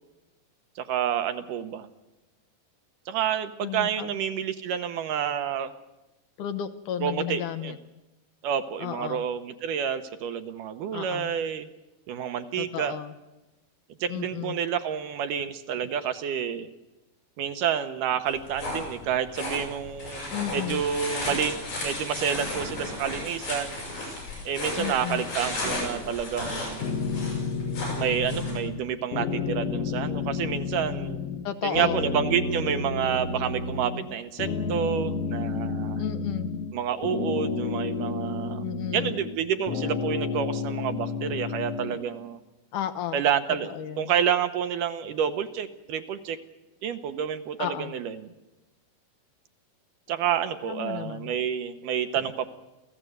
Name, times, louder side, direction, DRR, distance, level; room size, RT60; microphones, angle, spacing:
voice 1, 0.8-1.9 3.1-5.7 7.0-7.7 8.4-11.7 12.1-13.0 14.0-16.7 17.4-23.8 24.4-26.8 28.0-31.2 31.6-36.0 36.7-38.6 38.9-42.4 43.1-46.4 46.8-48.3 50.1-52.5, right 8 dB, 75° right, 9 dB, 2.4 m, -29 dB
voice 2, 3.6-4.2 6.4-7.8 8.8-9.3 10.9-11.3 12.6-13.1 14.1-14.6 20.3-20.8 24.8-25.2 31.4-32.1 36.0-36.5 38.6-39.1 42.7-43.2 43.6-44.1 47.6-47.9 50.7-51.3, left 11 dB, 70° left, 10 dB, 2.3 m, -33 dB
sound 1, 18.3-28.5, left 2 dB, 85° left, 9.4 m, -34 dB
sound 2, 26.8-28.8 29.1-31.5 31.7-34.1 34.4-36.7 37.0-39.4 39.7-42.0, left 4 dB, 55° left, 2.1 m, -31 dB
27.0 x 15.5 x 7.9 m, 1.0 s
omnidirectional pair, 4.1 m